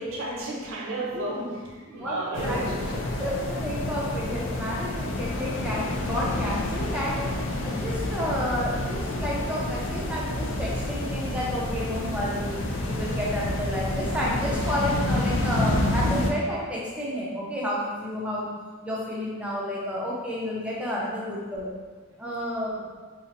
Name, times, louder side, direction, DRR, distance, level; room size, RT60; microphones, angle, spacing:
voice 1, 0.0-3.3 22.1-22.2, right 2 dB, 80° right, -2 dB, 0.7 m, -33 dB
voice 2, 2.0-2.6 3.2-7.3 7.6-18.5 18.8-21.7 22.2-22.8, equal, 5° right, -5 dB, 0.5 m, -31 dB
sound 1, 2.3-16.3, left 1 dB, 75° left, 0.4 m, -29 dB
4.1 x 2.5 x 2.6 m, 1.5 s
head